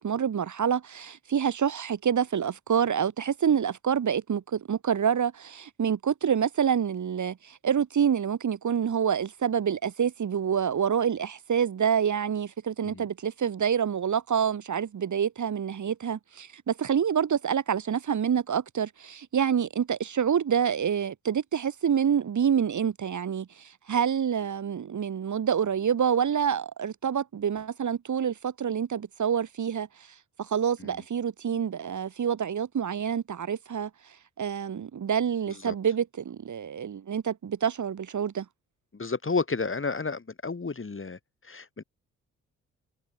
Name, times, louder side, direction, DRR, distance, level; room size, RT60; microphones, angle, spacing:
voice 1, 0.0-29.9 30.4-33.9 34.4-38.4, right 8 dB, 55° right, 3.0 m, -27 dB
voice 2, 38.9-41.8, left 4 dB, 35° left, 8.0 m, -32 dB
hypercardioid pair, 40°, 35 cm